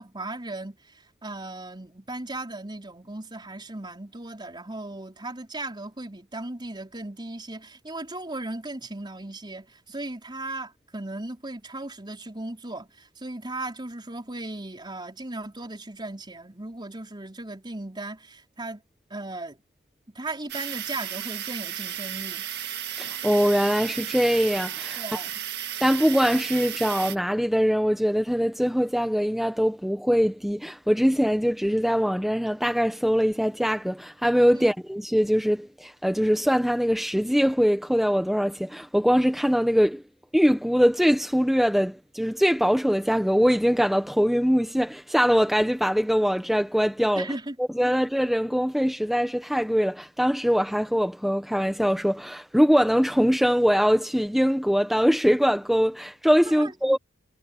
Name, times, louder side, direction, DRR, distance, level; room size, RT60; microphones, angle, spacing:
voice 1, 0.0-18.8 19.1-19.6 20.1-22.5 25.0-25.4 34.5-34.7 47.2-47.6 56.4-57.0, right 2 dB, 20° right, 4.7 m, -37 dB
sound 1, 20.5-27.2, right 11 dB, 55° right, 1.8 m, -34 dB
voice 2, 23.0-25.0 25.8-40.0 40.3-47.3 47.6-57.0, equal, ahead, 1.2 m, -22 dB
head